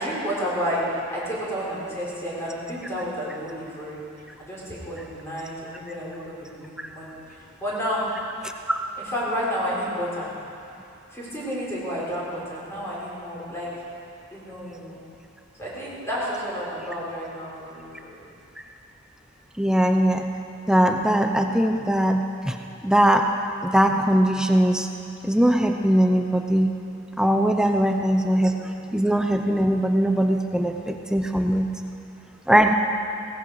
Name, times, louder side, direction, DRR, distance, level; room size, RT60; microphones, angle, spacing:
voice 1, 0.0-4.0 4.4-4.6 4.9-8.1 9.0-10.3 11.1-13.7 14.3-15.0 15.6-18.3 27.7-28.8, equal, 15° left, -7 dB, 4.0 m, -31 dB
voice 2, 19.6-20.3 20.7-22.6 22.8-23.3 23.6-24.9 25.2-26.7 27.2-28.5 28.9-31.7 32.5-32.7, right 1 dB, 5° right, 4 dB, 0.6 m, -20 dB
17.5 x 15.0 x 4.7 m, 2.7 s
head